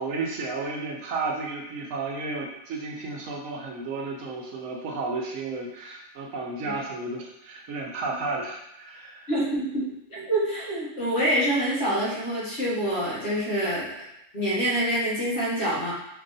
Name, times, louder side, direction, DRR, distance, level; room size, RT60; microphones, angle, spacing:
voice 1, 0.0-9.3, right 3 dB, 85° right, 0 dB, 1.1 m, -32 dB
voice 2, 9.3-14.1 14.3-15.9, right 1 dB, 55° left, -8 dB, 1.6 m, -26 dB
4.6 x 2.9 x 2.6 m, 0.84 s
omnidirectional pair, 1.3 m